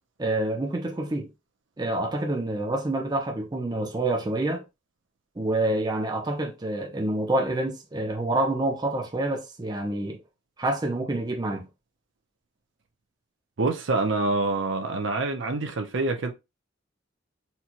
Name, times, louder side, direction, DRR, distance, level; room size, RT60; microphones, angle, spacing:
voice 1, 0.2-1.3 1.8-4.6 5.4-10.2 10.6-11.6, right 2 dB, 20° right, 0.5 m, -27 dB
voice 2, 13.6-16.3, right 3 dB, 65° right, 0.6 m, -26 dB
4.3 x 2.2 x 2.8 m
head